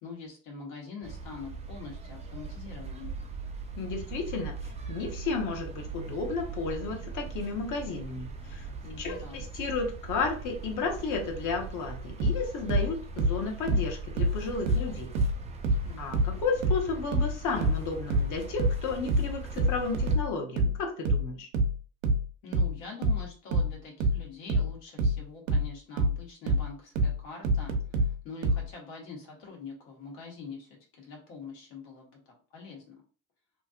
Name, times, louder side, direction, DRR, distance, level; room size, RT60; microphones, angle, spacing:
voice 1, 0.0-3.2 8.8-9.4 15.8-16.2 22.4-33.0, left 4 dB, 75° left, 0 dB, 1.5 m, -44 dB
sound 1, 1.0-20.2, right 4 dB, 15° right, 0.4 m, -41 dB
voice 2, 3.8-4.6 4.9-8.7 9.0-15.1 16.0-21.5, left 4 dB, 50° left, 3 dB, 1.0 m, -33 dB
sound 2, 12.2-15.4 15.6-28.7, right 1 dB, 85° right, 0.7 m, -26 dB
2.9 x 2.7 x 2.4 m, 0.40 s
supercardioid pair, 105°, 40 cm